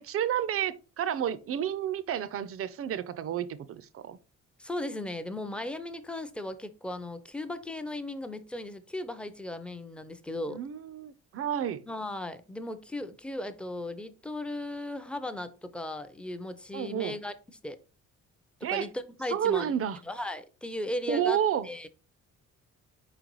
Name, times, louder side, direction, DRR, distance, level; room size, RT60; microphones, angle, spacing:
voice 1, 0.0-4.2 10.5-11.8 16.7-17.2 18.6-18.9 19.3-20.0 21.1-21.7, right 9 dB, 50° right, 0.5 m, -30 dB
voice 2, 4.6-10.6 11.9-17.3 17.6-17.8 18.6-19.7 20.0-21.4 21.6-21.9, left 1 dB, 5° left, 0.5 m, -36 dB
4.4 x 3.9 x 3.0 m
cardioid pair, 90°, 30 cm